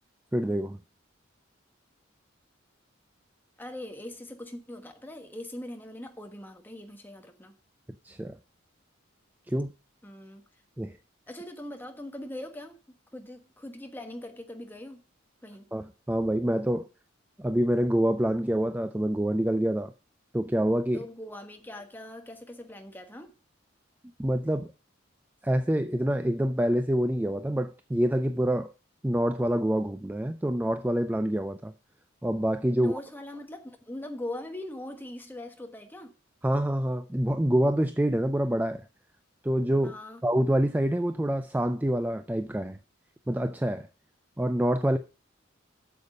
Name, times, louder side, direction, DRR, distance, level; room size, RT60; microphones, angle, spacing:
voice 1, 0.3-0.8 8.0-8.4 9.5-9.7 10.8-10.9 15.7-16.9 17.4-19.9 20.3-21.0 24.2-24.7 25.4-28.7 29.0-31.7 32.2-33.0 36.4-38.8 39.4-40.0 40.2-42.8 43.3-43.9 44.4-45.0, right 1 dB, 10° right, 0.4 m, -26 dB
voice 2, 3.6-7.5 10.0-10.4 11.3-15.0 15.4-15.7 20.9-23.3 32.7-36.1 39.8-40.2, left 1 dB, 10° left, 1.3 m, -41 dB
8.1 x 7.1 x 6.3 m
head